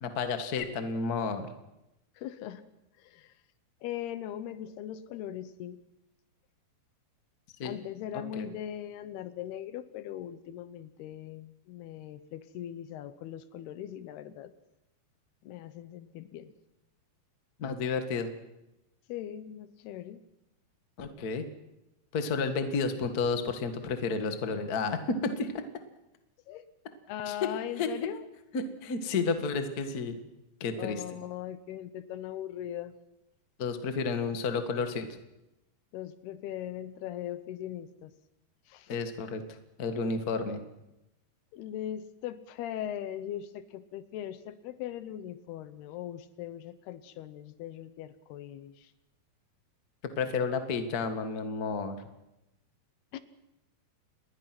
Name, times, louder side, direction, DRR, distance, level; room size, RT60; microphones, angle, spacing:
voice 1, 0.0-1.5 7.6-7.8 8.1-8.5 17.6-18.3 21.0-21.4 22.1-25.6 27.3-27.4 27.8-27.9 28.5-30.2 30.6-31.0 33.6-35.1 38.9-40.6 50.2-52.0, left 4 dB, 50° left, 8 dB, 1.0 m, -31 dB
voice 2, 2.2-2.7 3.0-3.3 3.8-5.8 7.6-14.5 15.4-16.5 19.1-20.2 26.5-26.6 27.1-28.2 30.8-33.0 35.9-38.1 38.7-38.9 40.4-40.6 41.5-48.9 53.1-53.2, left 11 dB, 80° left, 13 dB, 3.0 m, -40 dB
28.0 x 20.5 x 6.1 m, 0.92 s
omnidirectional pair, 4.7 m